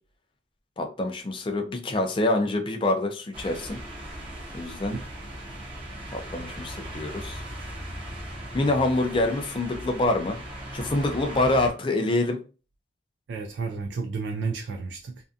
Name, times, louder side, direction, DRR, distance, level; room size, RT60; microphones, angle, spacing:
voice 1, 0.8-3.8 4.5-5.0 6.1-7.4 8.5-10.4 10.7-12.4, left 2 dB, 25° left, 0.4 m, -26 dB
sound 1, 3.3-11.7, right 1 dB, 25° right, 0.7 m, -38 dB
voice 2, 13.3-15.2, right 4 dB, 75° right, 0.3 m, -32 dB
2.6 x 2.2 x 2.4 m
head